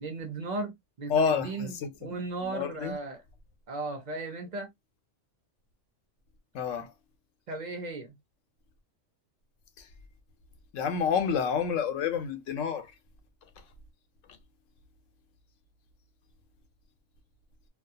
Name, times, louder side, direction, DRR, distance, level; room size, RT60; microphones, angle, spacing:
voice 1, 0.0-3.2 3.7-4.7 7.5-8.2, right 3 dB, 45° right, 0.6 m, -36 dB
voice 2, 1.1-1.5 2.0-2.2 2.4-3.0 6.5-6.9 10.7-12.9, left 6 dB, 90° left, 1.0 m, -28 dB
2.3 x 2.3 x 2.6 m
omnidirectional pair, 1.3 m